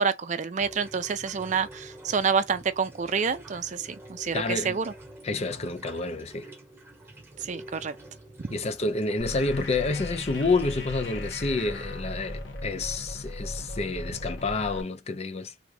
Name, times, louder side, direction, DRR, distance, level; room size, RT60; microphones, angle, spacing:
voice 1, 0.0-4.9 7.4-8.0 8.4-8.5, right 6 dB, 40° right, 0.4 m, -28 dB
sound 1, 0.6-11.0, right 1 dB, 15° right, 1.1 m, -48 dB
voice 2, 4.3-4.8 5.2-6.5 8.5-15.5, left 3 dB, 35° left, 0.5 m, -29 dB
sound 2, 9.2-14.8, left 1 dB, 85° left, 1.1 m, -37 dB
3.5 x 2.4 x 3.2 m
head